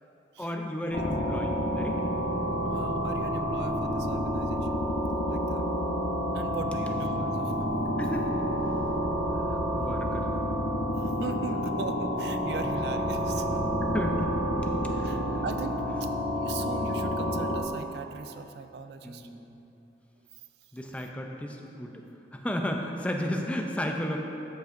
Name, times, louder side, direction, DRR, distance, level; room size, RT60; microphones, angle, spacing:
voice 1, 0.4-2.0 4.8-5.2 8.0-8.3 9.5-10.3 11.2-11.6 12.6-12.7 13.8-15.4 16.7-16.8 19.0-19.6 20.7-22.0 22.3-24.2, equal, 5° left, 2 dB, 0.4 m, -34 dB
sound 1, 0.9-17.6, equal, 85° left, 0.8 m, -29 dB
voice 2, 2.6-4.8 5.3-5.7 6.3-7.9 11.0-13.7 15.0-16.1 16.4-19.3, right 5 dB, 65° right, 8 dB, 0.3 m, -40 dB
13.0 x 5.2 x 2.6 m, 2.9 s
head